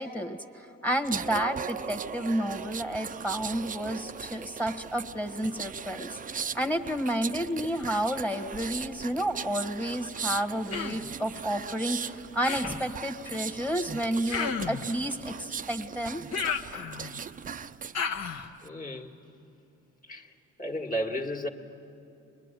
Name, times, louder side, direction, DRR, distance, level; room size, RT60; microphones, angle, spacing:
voice 1, 0.0-16.2 16.7-16.8, equal, 5° left, 1.4 m, -31 dB
sound 1, 1.0-18.0 18.4-18.7, right 7 dB, 30° right, 0.5 m, -38 dB
Human voice, 10.7-11.1 12.4-12.9 14.3-14.9 16.3-17.2 17.9-18.5, left 6 dB, 60° left, 1.4 m, -32 dB
voice 2, 18.6-19.2 20.0-21.5, equal, 25° left, 1.8 m, -34 dB
23.0 x 21.5 x 9.1 m
cardioid pair, 90°, 30 cm